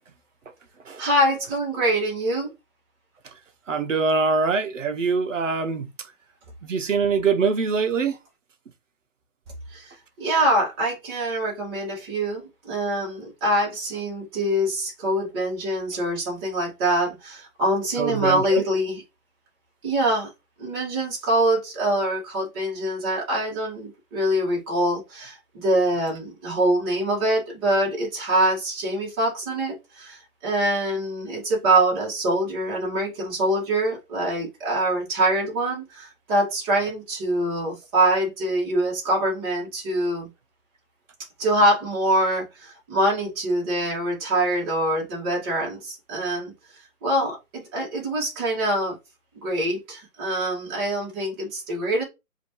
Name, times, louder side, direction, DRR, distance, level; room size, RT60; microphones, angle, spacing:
voice 1, 1.0-2.5 9.7-19.0 19.8-20.3 20.6-40.3 41.4-49.0 49.4-52.0, right 1 dB, 15° right, 1.8 m, -24 dB
voice 2, 3.7-5.9 6.6-8.2 18.0-18.6, right 5 dB, 55° right, 1.0 m, -23 dB
5.0 x 2.8 x 3.1 m
hypercardioid pair, 160°, 45 cm